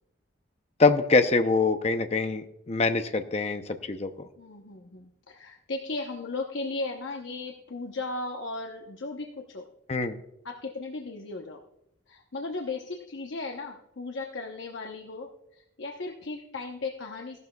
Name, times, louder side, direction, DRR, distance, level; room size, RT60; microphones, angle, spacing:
voice 1, 0.8-4.3 9.9-10.2, left 3 dB, 35° left, 8 dB, 0.6 m, -24 dB
voice 2, 4.4-9.6 10.4-11.6 12.1-17.4, left 3 dB, 75° left, 2 dB, 0.9 m, -36 dB
15.5 x 12.0 x 2.3 m, 0.81 s
head